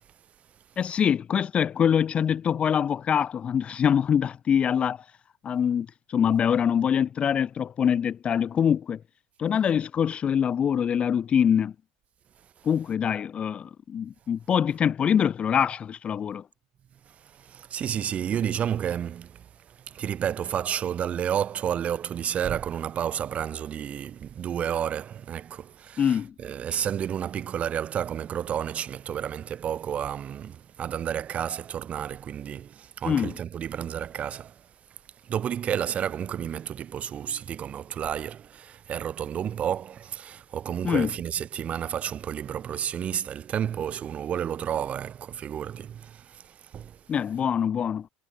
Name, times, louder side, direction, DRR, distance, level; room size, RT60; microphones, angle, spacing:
voice 1, 0.8-5.0 5.4-9.0 9.4-11.7 12.6-16.4 26.0-26.3 33.0-33.3 40.8-41.1 47.1-48.1, left 8 dB, 30° left, 0.5 m, -24 dB
voice 2, 17.3-34.6 35.2-47.0, right 9 dB, 40° right, 2.9 m, -31 dB
supercardioid pair, 100°, 4 cm